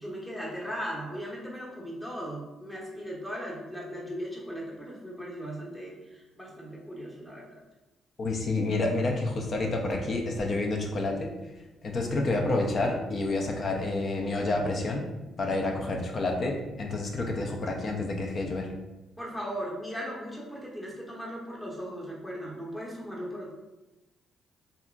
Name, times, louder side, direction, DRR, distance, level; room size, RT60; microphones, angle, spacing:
voice 1, 0.0-7.6 11.9-12.3 19.2-23.5, equal, 10° left, -4 dB, 0.9 m, -38 dB
voice 2, 8.2-11.3 11.8-15.1 15.4-18.7, left 2 dB, 50° left, 1 dB, 0.5 m, -29 dB
2.8 x 2.5 x 2.3 m, 1.0 s
cardioid pair, 90°, 0 cm